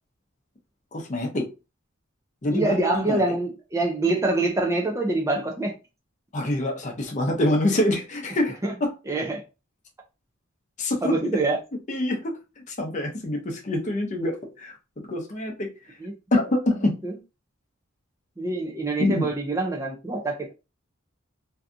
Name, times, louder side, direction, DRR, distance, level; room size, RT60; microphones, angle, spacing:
voice 1, 0.9-1.5 2.4-3.2 6.3-8.9 10.8-11.2 11.9-12.3 12.7-14.7 15.1-15.7 16.3-16.9 19.0-19.3, left 1 dB, 35° left, 0.6 m, -25 dB
voice 2, 2.5-5.8 8.6-8.7 9.1-9.4 11.0-11.6 16.0-16.1 17.0-17.2 18.4-20.5, right 2 dB, 15° right, 0.4 m, -25 dB
2.6 x 2.3 x 2.4 m
head